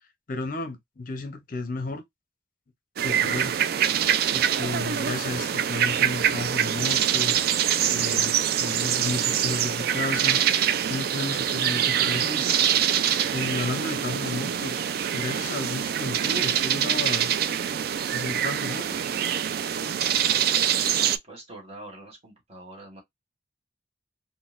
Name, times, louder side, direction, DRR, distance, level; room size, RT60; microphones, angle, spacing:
voice 1, 0.3-2.0 3.0-3.6 4.3-7.4 7.9-8.4 8.6-10.4 10.9-12.5 13.3-14.8 15.1-17.3 18.1-19.0, left 3 dB, 50° left, 0.6 m, -33 dB
sound 1, 3.0-21.2, right 9 dB, 55° right, 0.3 m, -25 dB
voice 2, 20.8-23.0, right 1 dB, 35° right, 1.4 m, -44 dB
3.8 x 2.2 x 2.4 m
head